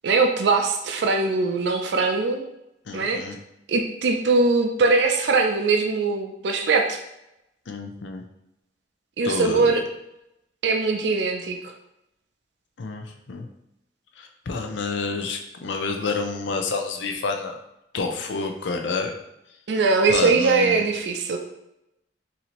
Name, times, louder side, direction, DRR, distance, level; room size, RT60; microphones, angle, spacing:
voice 1, 0.0-2.5 2.9-3.2 3.7-7.0 9.2-9.8 10.6-11.6 19.7-21.4, right 4 dB, 65° right, 3 dB, 0.4 m, -21 dB
voice 2, 2.9-3.4 7.7-8.2 9.2-9.7 12.8-13.5 14.2-17.6 17.9-19.1 20.1-20.8, left 4 dB, 90° left, 3 dB, 0.5 m, -29 dB
4.1 x 2.7 x 2.9 m, 0.85 s
head